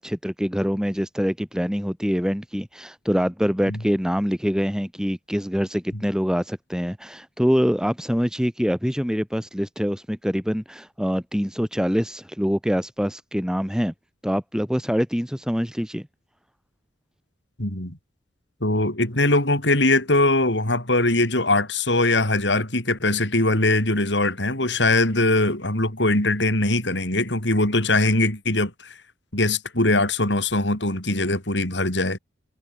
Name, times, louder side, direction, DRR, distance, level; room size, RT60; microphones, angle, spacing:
voice 1, 0.0-13.9 14.2-16.1, equal, 5° right, 6.6 m, -25 dB
voice 2, 17.6-18.0 18.6-28.9 29.3-32.2, left 2 dB, 70° left, 6.9 m, -21 dB
head